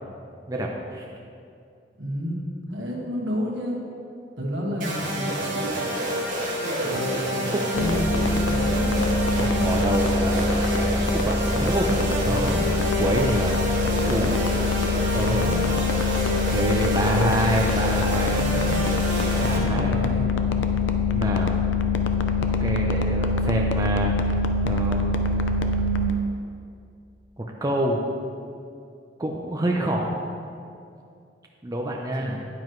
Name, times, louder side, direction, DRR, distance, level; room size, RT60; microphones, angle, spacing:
voice 1, 0.5-1.0 7.5-7.6 9.4-11.9 12.3-13.7 14.1-14.4 15.1-15.6 16.5-18.5 19.4-20.0 21.1-21.6 22.3-24.1 24.6-25.6 27.4-28.0 29.2-30.2 31.6-32.4, right 1 dB, 20° right, 0 dB, 0.6 m, -27 dB
voice 2, 2.0-3.8 4.4-5.7 6.8-9.1 9.3-9.7 11.5-11.9 12.2-12.6 15.2-15.6 16.9-17.3 18.2-18.9 19.4-20.3 32.2-32.4, equal, 70° right, -2 dB, 1.6 m, -31 dB
sound 1, 4.8-19.6, right 1 dB, 45° right, 1.8 m, -28 dB
sound 2, 7.7-26.1, left 3 dB, 80° left, 0.6 m, -24 dB
9.6 x 9.5 x 3.1 m, 2.4 s
head